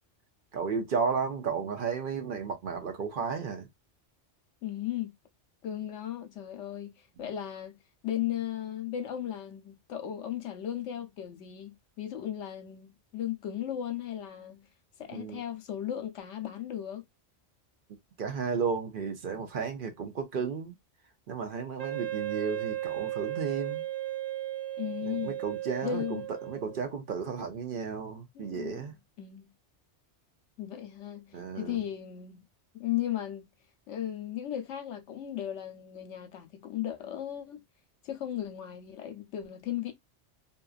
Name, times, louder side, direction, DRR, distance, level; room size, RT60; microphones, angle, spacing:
voice 1, 0.5-3.7 15.1-15.4 18.2-20.7 21.3-23.8 25.0-28.9 31.3-31.8, right 5 dB, 55° right, 0.7 m, -33 dB
voice 2, 4.6-5.1 5.6-14.7 15.0-17.0 24.8-25.4 25.8-26.3 28.3-29.5 30.6-32.5 32.8-33.5 33.9-37.6 38.0-39.9, left 11 dB, 80° left, 1.0 m, -36 dB
Wind instrument woodwind instrument, 21.8-26.9, right 13 dB, 85° right, 0.3 m, -35 dB
2.8 x 2.4 x 2.4 m
omnidirectional pair, 1.2 m